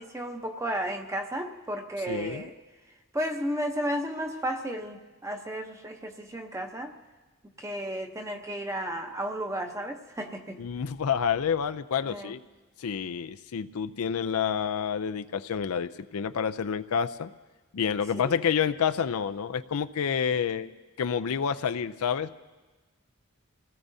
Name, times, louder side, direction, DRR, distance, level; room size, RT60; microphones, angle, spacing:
voice 1, 0.0-2.5 3.1-6.9 7.6-10.6 12.1-12.3 18.1-18.3, equal, 15° right, 4 dB, 0.8 m, -33 dB
voice 2, 2.1-2.5 10.6-12.4 12.8-17.3 17.7-20.7 21.0-22.3, left 7 dB, 85° left, 11 dB, 0.5 m, -28 dB
27.0 x 17.5 x 2.7 m, 1.2 s
head